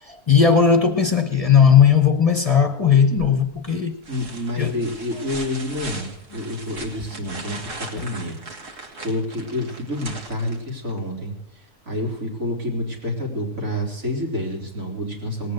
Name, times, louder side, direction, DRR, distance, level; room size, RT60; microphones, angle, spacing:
voice 1, 0.0-3.9 4.6-4.8 6.4-6.5 8.0-8.1, left 7 dB, 30° left, 0.8 m, -17 dB
sound 1, 3.5-3.6 4.0-11.0 12.8-12.9, right 2 dB, 70° right, 2.2 m, -38 dB
voice 2, 4.1-11.3 11.9-15.5, left 1 dB, 85° right, 3.7 m, -28 dB
18.5 x 8.7 x 6.5 m
omnidirectional pair, 1.4 m